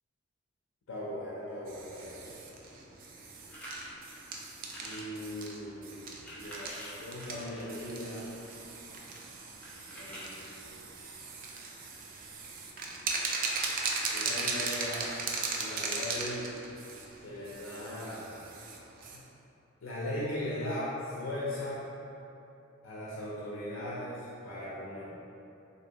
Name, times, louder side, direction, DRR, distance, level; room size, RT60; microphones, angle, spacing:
voice 1, 0.9-2.4 4.8-8.3 9.9-10.8 14.1-15.1 15.6-16.5 17.2-18.4 19.1-19.3 19.8-21.8 22.8-25.2, left 1 dB, 85° left, -8 dB, 0.5 m, -39 dB
sound 1, 1.7-19.2, right 4 dB, 45° right, 0.4 m, -38 dB
sound 2, 3.5-3.9 4.6-5.1 6.0-8.5 9.6-10.6, equal, 5° left, 0.5 m, -47 dB
3.5 x 2.6 x 2.8 m, 2.8 s
head